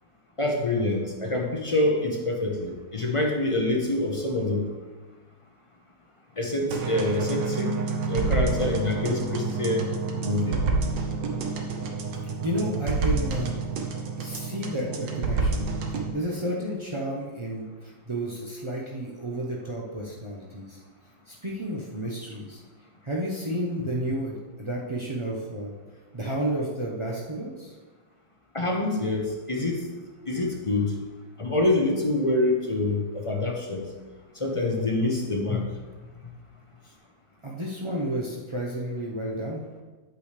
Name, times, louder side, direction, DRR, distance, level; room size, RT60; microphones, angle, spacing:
voice 1, 0.4-4.6 6.4-7.7 8.1-9.9 10.2-10.7 28.5-29.8 30.3-30.9 31.4-33.9 34.4-35.6, left 2 dB, 35° left, 0 dB, 0.5 m, -26 dB
sound 1, 6.7-16.1, right 4 dB, 70° right, 1.6 m, -28 dB
voice 2, 12.4-13.6 14.2-15.7 16.1-20.8 21.3-22.6 23.0-25.7 26.1-27.7 37.4-39.6, right 1 dB, 50° right, -3 dB, 0.3 m, -31 dB
9.1 x 8.6 x 3.3 m, 1.3 s
omnidirectional pair, 2.1 m